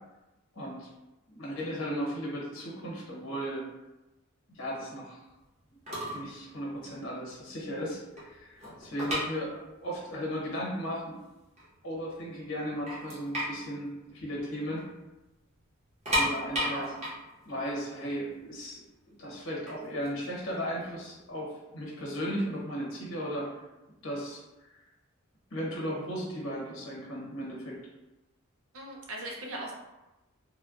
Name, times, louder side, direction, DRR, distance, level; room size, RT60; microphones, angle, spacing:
voice 1, 0.5-0.9 1.3-3.6 4.5-5.2 5.7-5.8 6.1-11.2 11.8-14.9 16.1-17.0 17.4-18.8 19.1-23.5 24.0-24.8 25.5-27.7, equal, 70° left, -3 dB, 0.9 m, -36 dB
sound 1, 5.6-5.7 5.9-6.3 6.6-6.8 7.3-7.4 7.7-10.0 10.2-10.3 11.0-11.1 11.4-12.1 12.5-12.6 12.9-14.9 15.1-15.3 15.8-18.7 19.5-21.2, equal, 35° right, 1.0 m, -33 dB
voice 2, 16.6-16.9 28.7-29.7, right 1 dB, 80° right, -2 dB, 0.7 m, -39 dB
3.2 x 2.1 x 2.4 m, 1.0 s
head